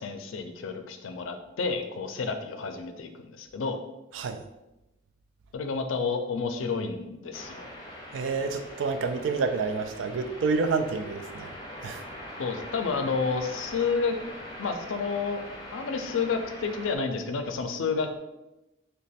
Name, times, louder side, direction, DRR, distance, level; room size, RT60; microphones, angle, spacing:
voice 1, 0.0-3.8 5.5-7.7 12.4-14.2 14.6-15.4 15.7-18.2, left 5 dB, 85° left, 7 dB, 0.4 m, -30 dB
sound 1, 7.3-17.0, left 1 dB, 20° left, 0.6 m, -42 dB
voice 2, 8.1-11.5 11.8-12.0, right 4 dB, 80° right, 7 dB, 0.4 m, -28 dB
3.0 x 2.2 x 4.1 m, 0.95 s
head